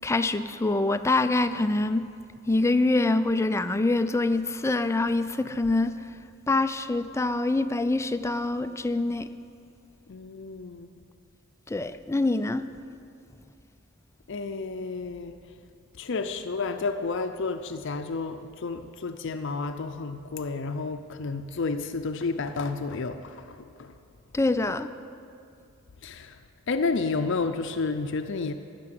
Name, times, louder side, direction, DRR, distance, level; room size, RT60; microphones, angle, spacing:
voice 1, 0.0-2.0 2.5-5.9 6.5-9.3 11.7-12.6 24.3-24.9, left 2 dB, 15° left, 11 dB, 0.4 m, -25 dB
voice 2, 10.1-11.0 14.3-15.4 16.0-23.9 26.0-26.4 26.7-28.5, left 4 dB, 65° left, 7 dB, 0.6 m, -31 dB
15.5 x 6.9 x 9.3 m, 2.4 s
head